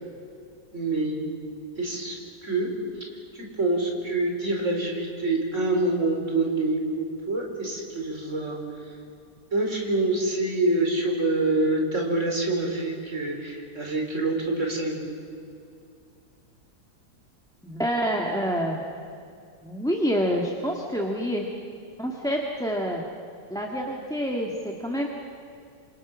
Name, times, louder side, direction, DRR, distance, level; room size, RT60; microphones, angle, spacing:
voice 1, 0.7-1.2 1.8-2.2 2.4-2.7 3.3-8.6 8.9-9.0 9.5-15.0, right 2 dB, 45° right, 1 dB, 4.8 m, -26 dB
voice 2, 17.6-18.8 19.6-21.4 22.0-23.0 23.5-25.1, equal, ahead, 0 dB, 1.7 m, -27 dB
27.5 x 26.5 x 6.3 m, 2.4 s
omnidirectional pair, 1.9 m